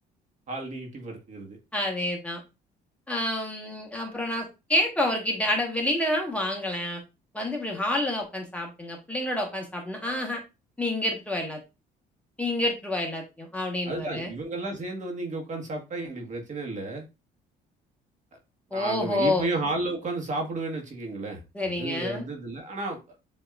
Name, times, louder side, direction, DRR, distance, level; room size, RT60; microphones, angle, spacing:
voice 1, 0.5-1.6 13.9-17.0 18.7-23.0, right 2 dB, 45° right, 2 dB, 1.5 m, -32 dB
voice 2, 1.7-2.4 3.1-7.0 7.3-10.4 10.8-11.6 12.4-14.3 18.7-19.4 21.5-22.2, left 1 dB, 10° left, 0 dB, 1.2 m, -28 dB
7.6 x 2.9 x 2.4 m, 0.26 s
cardioid pair, 110°, 17 cm